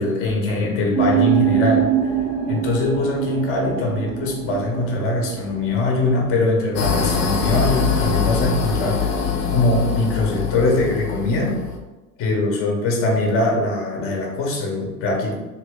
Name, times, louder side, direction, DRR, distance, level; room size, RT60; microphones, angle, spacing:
voice 1, 0.0-1.9 2.5-9.2 9.5-11.6 12.2-15.3, left 2 dB, 30° left, 0 dB, 0.8 m, -22 dB
sound 1, 0.9-6.3, right 9 dB, 20° right, 0.4 m, -23 dB
sound 2, 6.8-11.8, left 6 dB, 55° left, 0.7 m, -23 dB
2.9 x 2.8 x 3.2 m, 1.1 s
figure-of-eight pair, 80°, 46 cm